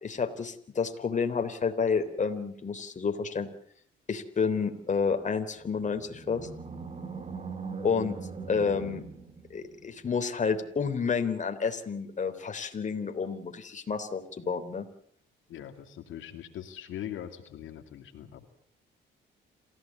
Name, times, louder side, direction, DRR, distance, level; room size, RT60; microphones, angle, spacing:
voice 1, 0.0-3.5 4.1-6.5 7.8-8.2 8.5-9.0 9.5-14.9, left 5 dB, 40° left, 6 dB, 3.5 m, -30 dB
Animal, 5.6-10.0, right 4 dB, 35° right, 3.2 m, -41 dB
voice 2, 15.5-18.5, left 10 dB, 80° left, 5 dB, 2.5 m, -41 dB
28.0 x 15.5 x 8.4 m, 0.66 s
cardioid pair, 90°, 20 cm